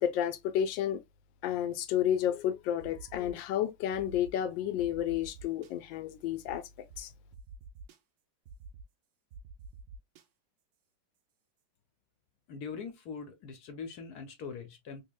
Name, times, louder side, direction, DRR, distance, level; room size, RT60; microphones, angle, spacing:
voice 1, 0.0-1.0 1.4-6.6 7.0-7.1, left 10 dB, 80° left, 1.3 m, -31 dB
sound 1, 2.8-3.4 3.9-4.3 4.8-5.7 6.5-6.6 6.9-7.0 7.3-8.0 8.5-8.8 9.3-10.2, right 5 dB, 85° right, 0.6 m, -48 dB
voice 2, 12.5-15.1, left 5 dB, 60° left, 1.1 m, -42 dB
3.7 x 3.3 x 2.2 m
omnidirectional pair, 2.2 m